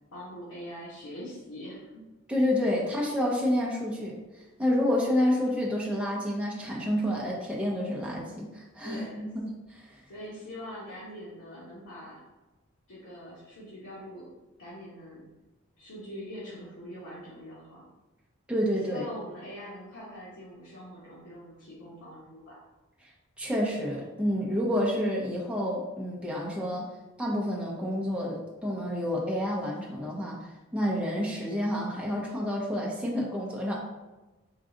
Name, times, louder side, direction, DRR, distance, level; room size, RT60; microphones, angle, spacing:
voice 1, 0.1-2.0 2.6-2.8 8.8-9.3 10.1-12.2 12.9-14.3 14.6-15.2 15.8-17.8 18.8-22.6, equal, 90° left, -9 dB, 1.0 m, -43 dB
voice 2, 2.3-4.2 4.6-9.8 18.5-19.1 23.4-26.8 27.2-30.4 30.7-33.8, equal, 5° right, -4 dB, 0.7 m, -29 dB
3.7 x 2.3 x 3.8 m, 1.1 s
head